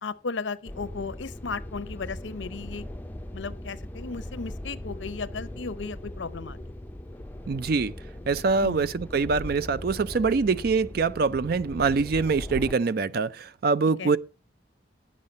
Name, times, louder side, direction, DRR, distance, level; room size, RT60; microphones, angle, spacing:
voice 1, 0.0-2.9 3.3-6.7 8.6-8.8 14.0-14.1, left 4 dB, 75° left, 0.7 m, -35 dB
sound 1, 0.6-12.7, left 1 dB, 10° left, 0.5 m, -39 dB
voice 2, 7.5-7.9 8.3-14.2, right 4 dB, 55° right, 0.4 m, -24 dB
9.7 x 7.4 x 5.1 m
head